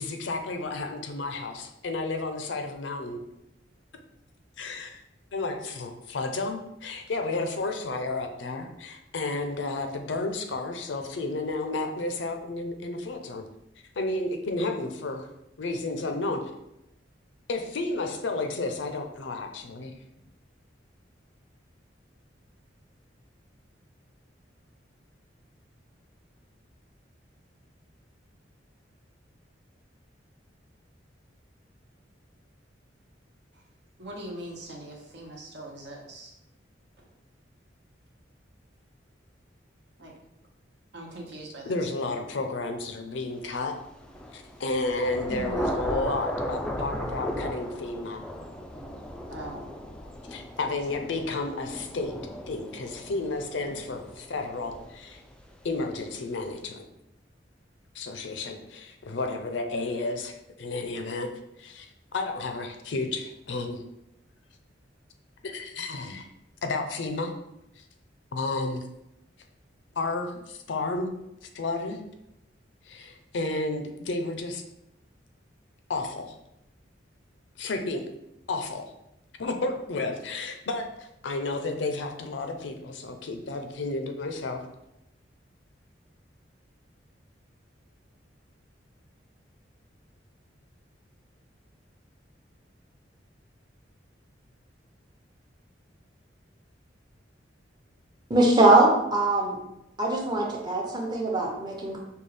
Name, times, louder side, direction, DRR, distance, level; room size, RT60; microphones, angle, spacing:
voice 1, 0.0-3.2 4.6-5.0 5.3-13.4 14.0-15.3 15.6-16.4 17.5-19.9 41.6-43.8 44.3-48.2 50.3-52.1 52.5-55.2 55.6-56.9 57.9-61.3 61.6-61.9 62.1-63.8 65.4-66.3 66.6-67.3 67.8-67.9 68.3-68.8 70.0-71.1 71.5-72.0 72.9-74.6 75.9-76.4 77.6-78.1 78.5-78.8 79.4-84.6, left 3 dB, 75° left, 5 dB, 0.5 m, -32 dB
voice 2, 34.0-36.3 40.0-40.1 40.9-42.0 45.3-45.7 49.3-49.6 50.6-51.0, right 1 dB, 65° right, -1 dB, 1.0 m, -40 dB
Thunder / Rain, 43.9-55.5, equal, 5° left, 0.3 m, -36 dB
voice 3, 98.3-99.6 100.0-102.0, right 2 dB, 25° right, -1 dB, 0.8 m, -22 dB
5.3 x 2.3 x 3.3 m, 0.84 s
head